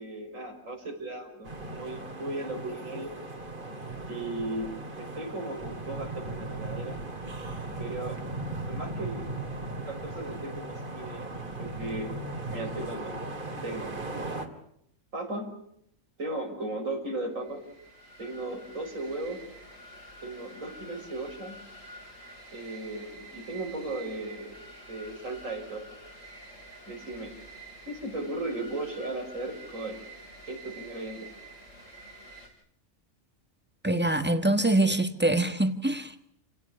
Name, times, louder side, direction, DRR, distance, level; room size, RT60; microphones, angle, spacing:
voice 1, 0.0-3.1 4.1-7.0 7.8-8.2 8.7-9.3 9.6-11.3 11.6-12.1 12.5-13.2 13.6-14.0 15.1-15.5 16.2-17.6 18.2-19.4 20.2-21.6 22.5-24.6 24.9-25.9 26.9-27.3 27.9-30.0 30.5-31.3, right 2 dB, 80° right, 6.2 m, -36 dB
sound 1, 1.4-14.5, right 2 dB, 40° right, 2.9 m, -37 dB
sound 2, 17.4-32.5, right 2 dB, 80° left, 6.5 m, -48 dB
voice 2, 33.8-36.3, right 2 dB, 10° right, 1.6 m, -25 dB
29.0 x 18.0 x 9.7 m
omnidirectional pair, 1.3 m